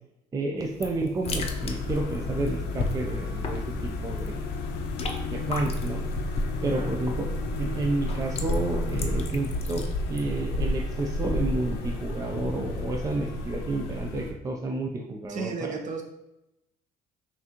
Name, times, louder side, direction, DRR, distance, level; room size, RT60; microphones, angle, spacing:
voice 1, 0.3-4.3 5.3-6.0 6.6-7.3 7.6-9.8 10.1-15.5, right 2 dB, 20° right, 2 dB, 0.4 m, -30 dB
sound 1, 0.6-12.2, left 3 dB, 35° left, 0.5 m, -38 dB
sound 2, 1.2-14.3, left 2 dB, 90° left, 0.6 m, -31 dB
voice 2, 6.7-7.0 15.3-16.0, right 5 dB, 45° right, 2 dB, 0.8 m, -34 dB
5.8 x 2.4 x 2.8 m, 0.89 s
cardioid pair, 110°, 17 cm